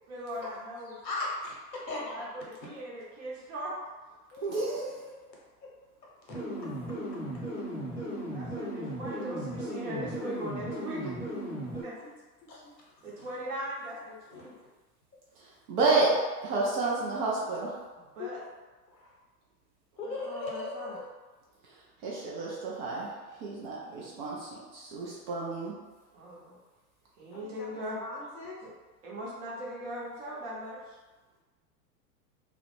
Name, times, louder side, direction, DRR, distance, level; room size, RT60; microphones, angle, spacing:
voice 1, 0.1-1.0 2.1-3.7 8.1-11.2 11.8-12.0 13.0-14.5 18.1-18.4 20.0-21.0 26.1-26.6 27.2-28.0 28.6-28.7 29.0-31.0, equal, 50° right, -5 dB, 1.0 m, -39 dB
voice 2, 1.0-2.3 4.3-5.2 5.6-5.7 6.2-6.4 12.0-12.1 12.5-12.7 13.0-13.3 14.3-14.6 18.2-18.3 18.9-19.1 20.0-21.1 27.3-27.7 28.0-28.6, left 2 dB, 85° left, -3 dB, 0.9 m, -39 dB
voice 3, 4.4-4.9 15.4-17.8 22.0-23.1 23.4-25.8, right 3 dB, 30° right, -5 dB, 0.4 m, -30 dB
sound 1, 6.3-11.8, right 1 dB, 5° right, 0.9 m, -36 dB
2.4 x 2.1 x 3.0 m, 1.2 s
figure-of-eight pair, 95°, 49 cm